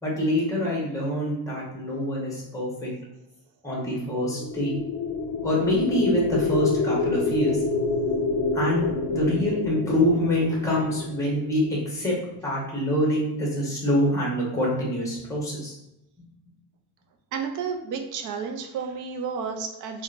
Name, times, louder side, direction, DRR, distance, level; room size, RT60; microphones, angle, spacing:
voice 1, 0.0-2.9 3.6-4.7 5.4-7.6 8.5-12.1 12.4-15.7, equal, 5° left, -4 dB, 0.8 m, -25 dB
sound 1, 4.2-12.3, left 4 dB, 50° left, 0.4 m, -28 dB
voice 2, 17.3-20.0, right 6 dB, 45° right, 4 dB, 0.4 m, -31 dB
3.6 x 2.2 x 2.4 m, 0.86 s
cardioid pair, 140°, 44 cm